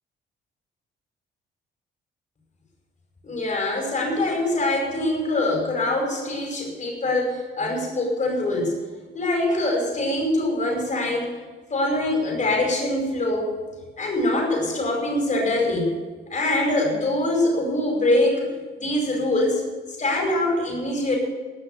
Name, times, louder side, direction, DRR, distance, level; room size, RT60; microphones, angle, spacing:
voice 1, 3.2-8.7 9.1-11.3 11.7-13.5 14.0-15.9 16.3-18.5 18.8-19.6 20.0-21.2, left 1 dB, 40° left, 0 dB, 5.1 m, -23 dB
17.5 x 6.3 x 8.1 m, 1.4 s
cardioid pair, 90°, 20 cm